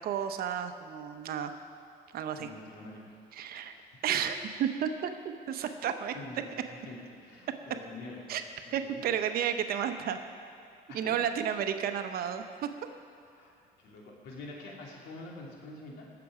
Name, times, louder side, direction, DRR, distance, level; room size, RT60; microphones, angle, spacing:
voice 1, 0.0-1.5 2.1-2.5 3.3-3.7 4.0-5.1 5.5-6.1 8.3-8.4 8.7-10.2 10.9-12.7, right 8 dB, 65° right, 8 dB, 0.9 m, -32 dB
voice 2, 2.4-3.2 3.6-4.0 5.6-5.8 6.1-8.2 8.7-9.0 10.9-11.1 13.3-13.5 13.8-16.0, left 2 dB, 85° left, -2 dB, 2.7 m, -46 dB
18.5 x 6.9 x 5.0 m, 2.5 s
cardioid pair, 110°, 17 cm